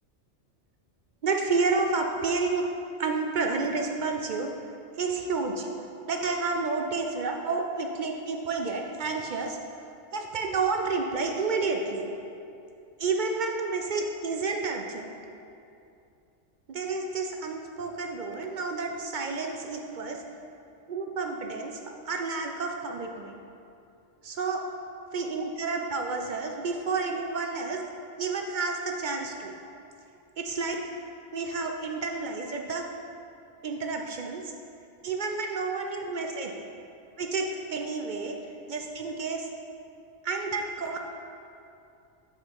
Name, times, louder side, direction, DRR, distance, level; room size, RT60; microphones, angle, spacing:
voice 1, 1.2-2.6 3.0-4.5 5.0-5.7 6.1-9.6 10.1-12.1 13.0-15.2 16.7-20.2 20.9-21.8 22.1-23.4 24.2-24.6 25.1-27.8 28.2-29.5 30.4-30.8 31.3-32.8 33.6-34.5 35.0-36.5 37.2-38.4 38.7-39.5 40.2-41.0, right 4 dB, 55° right, 3 dB, 0.5 m, -30 dB
6.2 x 5.9 x 4.6 m, 2.6 s
omnidirectional pair, 1.2 m